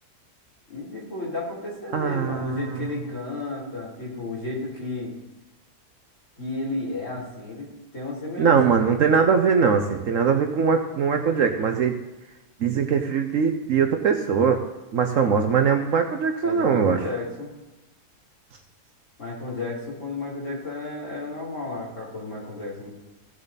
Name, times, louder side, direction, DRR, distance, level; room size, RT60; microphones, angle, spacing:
voice 1, 0.7-5.1 6.4-9.3 16.4-17.5 19.2-22.9, left 2 dB, 50° left, -5 dB, 3.8 m, -33 dB
voice 2, 1.9-2.8 8.4-12.0 12.6-14.6 14.9-17.0, right 6 dB, 60° right, 5 dB, 1.1 m, -21 dB
16.0 x 7.0 x 4.1 m, 1.0 s
omnidirectional pair, 1.7 m